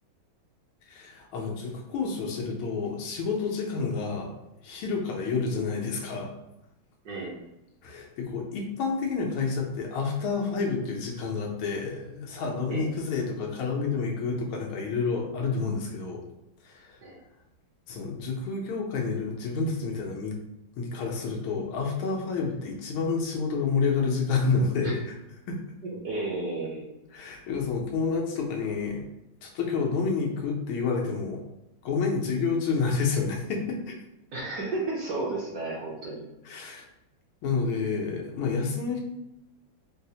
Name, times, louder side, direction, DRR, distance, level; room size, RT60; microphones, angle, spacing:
voice 1, 0.9-4.3 4.6-6.3 7.1-7.3 7.8-16.3 16.6-17.0 17.9-20.4 20.8-25.1 25.5-25.6 27.1-29.0 29.4-31.4 31.8-33.9 36.4-36.8 37.4-39.0, left 4 dB, 90° left, 0 dB, 1.5 m, -29 dB
voice 2, 7.0-7.4 12.7-12.9 17.0-17.2 24.8-24.9 25.8-26.9 34.3-36.3, right 2 dB, 65° right, -4 dB, 1.0 m, -33 dB
4.6 x 2.0 x 2.7 m, 0.90 s
omnidirectional pair, 2.2 m